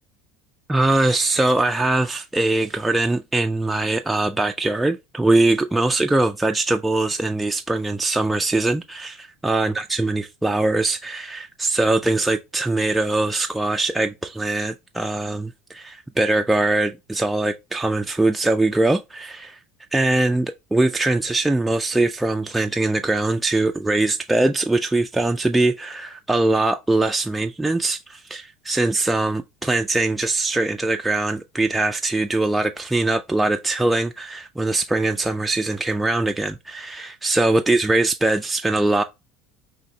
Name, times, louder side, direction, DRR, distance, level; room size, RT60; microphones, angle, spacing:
voice 1, 0.7-19.6 19.9-39.0, right 2 dB, 10° right, 0.3 m, -22 dB
5.0 x 2.8 x 2.7 m
supercardioid pair, 95°, 0 cm